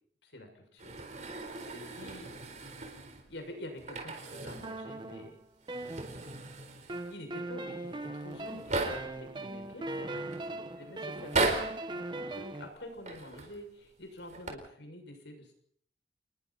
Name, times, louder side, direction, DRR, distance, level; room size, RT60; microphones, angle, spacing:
voice 1, 0.2-1.0 1.7-2.4 3.3-5.4 7.1-11.4 12.1-15.5, left 1 dB, 85° left, 4 dB, 6.7 m, -47 dB
sound 1, 0.8-3.3 3.8-4.8 5.1-5.2 5.6-7.2 7.9-8.0 8.2-9.2 9.9-10.4 11.1-11.9 13.0-13.6 14.2-14.5, right 3 dB, 45° right, 4.2 m, -36 dB
sound 2, 4.6-6.5 6.9-12.7, right 2 dB, 25° right, 1.4 m, -40 dB
29.5 x 20.5 x 4.3 m, 0.63 s
head